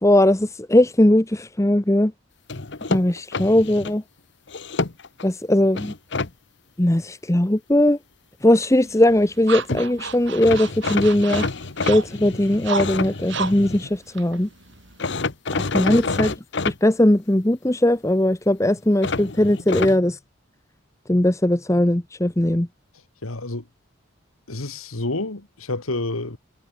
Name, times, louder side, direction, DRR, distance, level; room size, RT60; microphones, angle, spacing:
voice 1, 0.0-2.1 2.9-4.0 5.2-5.9 6.8-8.0 8.4-11.4 11.9-14.5 15.5-16.3 16.6-20.2 21.1-22.7, left 1 dB, 15° left, 0.8 m, -19 dB
sound 1, 2.5-3.9 4.5-5.3 5.8-6.3 9.4-9.5 9.7-9.9 10.4-13.9 15.0-16.8 19.0-20.0, left 3 dB, 55° left, 1.1 m, -28 dB
sound 2, 8.6-15.1, right 5 dB, 55° right, 4.6 m, -34 dB
voice 2, 23.2-23.7 24.5-26.4, left 2 dB, 80° left, 2.2 m, -29 dB
head